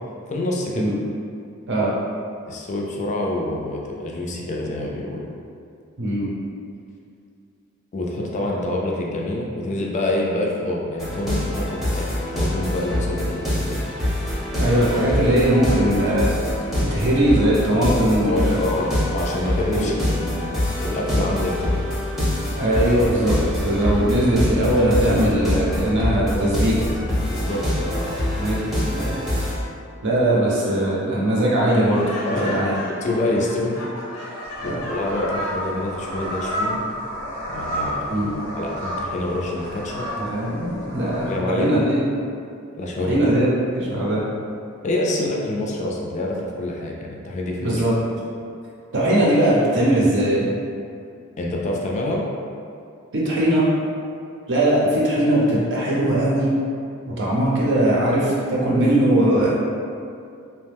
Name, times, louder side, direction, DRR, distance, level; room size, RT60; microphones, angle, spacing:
voice 1, 0.3-0.9 2.5-5.2 7.9-13.9 18.3-21.9 27.3-28.3 32.2-32.6 33.0-33.8 34.6-36.8 37.5-40.1 41.2-41.7 42.8-43.4 44.8-47.8 51.4-52.2, left 1 dB, 35° left, -2 dB, 0.3 m, -27 dB
voice 2, 6.0-6.3 14.5-16.3 16.8-18.6 19.7-19.9 22.5-23.4 23.6-26.9 28.4-28.6 28.9-29.1 30.0-32.7 34.6-34.9 38.1-38.3 40.2-42.0 43.0-43.5 43.7-44.3 47.6-48.0 48.9-50.5 53.1-53.7 54.5-56.5 57.0-59.5, right 1 dB, 60° right, -5 dB, 0.7 m, -20 dB
sound 1, 11.0-29.5, left 1 dB, ahead, 0.7 m, -25 dB
Laughter, 31.7-35.8, left 1 dB, 80° left, 0.5 m, -35 dB
sound 2, 34.4-41.4, equal, 85° right, 0.9 m, -30 dB
2.8 x 2.1 x 3.3 m, 2.4 s
head